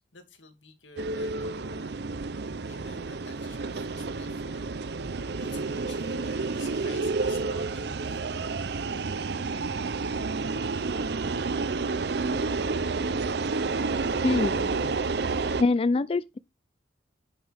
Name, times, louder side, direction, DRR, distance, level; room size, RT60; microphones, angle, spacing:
voice 1, 0.0-2.1 2.7-4.7 5.0-8.2, left 4 dB, 85° left, 2.4 m, -50 dB
sound 1, 1.0-15.6, right 3 dB, 60° right, 0.6 m, -30 dB
voice 2, 14.2-14.9 15.6-16.4, left 3 dB, 30° left, 0.3 m, -25 dB
10.5 x 6.4 x 3.5 m
head